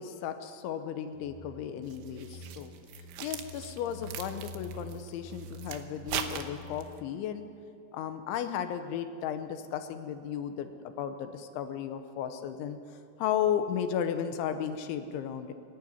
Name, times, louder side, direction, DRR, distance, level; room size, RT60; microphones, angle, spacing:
voice 1, 0.0-2.7 3.2-7.5 7.9-12.8 13.2-15.5, left 9 dB, 80° left, 8 dB, 3.2 m, -34 dB
sound 1, 1.1-7.1, equal, 30° left, 4.9 m, -47 dB
sound 2, 1.9-7.0, right 10 dB, 80° right, 3.3 m, -40 dB
25.0 x 12.0 x 9.6 m, 2.4 s
omnidirectional pair, 5.5 m